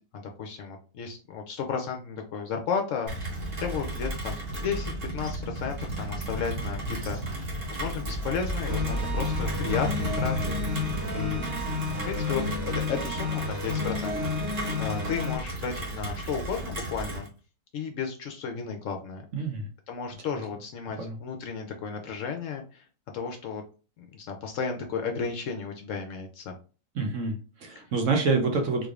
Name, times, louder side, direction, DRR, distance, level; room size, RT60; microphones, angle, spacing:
voice 1, 0.1-3.3 3.6-10.9 11.1-11.4 11.7-11.8 12.0-14.2 14.5-17.3 17.7-19.2 19.9-22.8 23.1-23.6 24.0-26.6 27.8-27.9, left 6 dB, 65° left, 3 dB, 0.8 m, -34 dB
Rain, 3.1-17.3, right 1 dB, 40° right, 1.3 m, -33 dB
sound 1, 8.6-15.4, left 4 dB, 85° right, 1.9 m, -31 dB
voice 2, 19.3-19.7 21.0-21.1 27.0-28.9, right 4 dB, 60° right, 3 dB, 1.0 m, -27 dB
3.7 x 3.3 x 2.4 m, 0.36 s
omnidirectional pair, 1.6 m